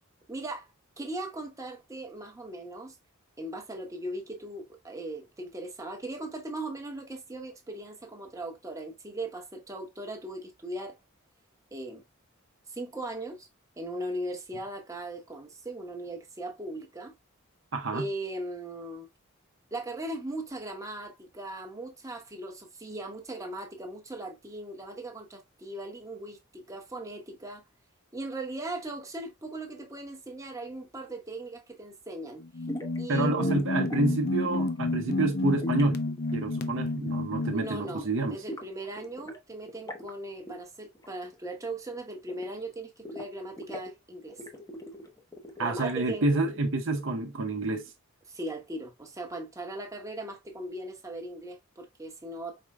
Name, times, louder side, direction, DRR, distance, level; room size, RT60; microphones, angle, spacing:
voice 1, 0.3-0.7 1.0-3.0 3.4-11.0 11.7-12.0 12.7-13.5 13.8-17.1 17.9-19.1 19.7-27.6 28.1-32.4 33.0-33.5 37.5-44.4 45.6-46.3 48.3-52.6, right 1 dB, 15° right, 1.0 m, -38 dB
voice 2, 17.7-18.1 33.1-36.0 36.3-38.4 45.6-47.9, right 2 dB, 65° right, 0.8 m, -28 dB
sound 1, 32.4-37.7, left 2 dB, 50° left, 0.6 m, -30 dB
sound 2, 32.7-33.0 33.4-34.0 34.4-34.8 35.6-37.1 37.4-37.6 37.8-39.4 39.7-40.1 40.5-40.6 40.8-41.3 41.6-42.7 43.0-43.9 44.3-46.1, equal, 15° left, 0.8 m, -42 dB
4.7 x 4.4 x 2.2 m
head